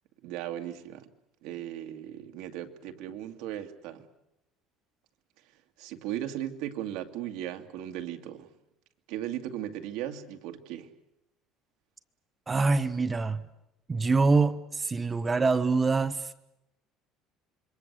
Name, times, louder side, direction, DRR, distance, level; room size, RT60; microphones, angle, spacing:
voice 1, 0.2-1.1 1.4-4.1 5.8-8.5 9.1-10.9, right 11 dB, 75° right, 2.3 m, -37 dB
voice 2, 12.5-13.4 13.9-16.3, right 4 dB, 15° right, 1.0 m, -25 dB
27.0 x 23.0 x 8.3 m
cardioid pair, 160°, 0 cm